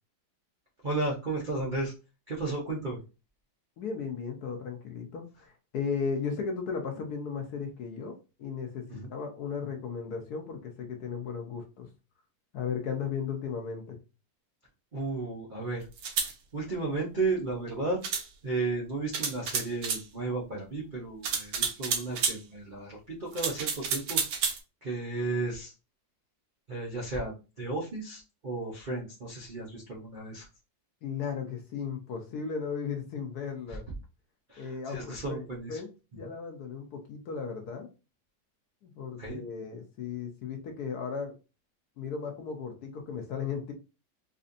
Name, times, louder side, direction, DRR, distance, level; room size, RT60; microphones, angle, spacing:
voice 1, 0.8-1.9 2.3-3.0 8.9-9.1 14.9-15.9 16.5-18.0 18.4-24.2 24.8-25.7 26.7-30.5 33.7-33.8 34.5-35.8 36.2-36.3 39.2-39.4, right 3 dB, 65° right, -3 dB, 0.4 m, -34 dB
voice 2, 3.8-8.8 9.1-11.9 12.5-14.0 31.0-33.8 34.5-37.9 38.8-41.3 42.0-43.7, left 6 dB, 65° left, 4 dB, 1.1 m, -36 dB
sound 1, 16.0-16.3 18.0-18.3 19.1-20.0 21.2-22.4 23.3-24.6, right 6 dB, 85° right, 1.6 m, -30 dB
4.2 x 2.6 x 2.5 m, 0.31 s
omnidirectional pair, 2.1 m